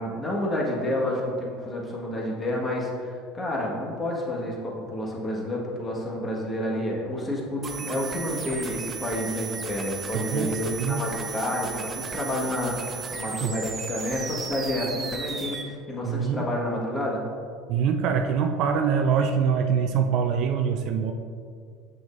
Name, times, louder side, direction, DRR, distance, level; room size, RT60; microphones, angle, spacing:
voice 1, 0.0-17.2, left 1 dB, 25° left, -2 dB, 1.5 m, -29 dB
sound 1, 7.6-15.6, right 6 dB, 30° right, 0.7 m, -35 dB
voice 2, 10.1-11.0 13.4-13.5 16.0-16.4 17.7-21.1, right 7 dB, 55° right, 5 dB, 0.4 m, -24 dB
7.0 x 6.0 x 2.6 m, 2.3 s
hypercardioid pair, 75°, 0 cm